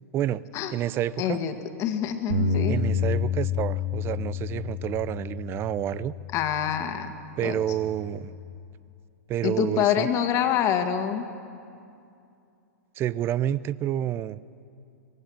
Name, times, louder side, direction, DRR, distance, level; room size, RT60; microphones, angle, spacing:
voice 1, 0.1-0.4 0.7-1.4 2.7-6.1 7.4-8.4 9.3-10.1 13.0-14.4, right 11 dB, 30° right, 19 dB, 0.5 m, -29 dB
voice 2, 1.2-2.8 6.3-7.1 7.4-7.6 9.4-11.3, left 9 dB, 35° left, 7 dB, 1.8 m, -26 dB
Bass guitar, 2.3-6.8 7.4-8.5, left 5 dB, 75° right, 1.7 m, -30 dB
20.0 x 16.0 x 8.9 m, 2.5 s
hypercardioid pair, 110°, 8 cm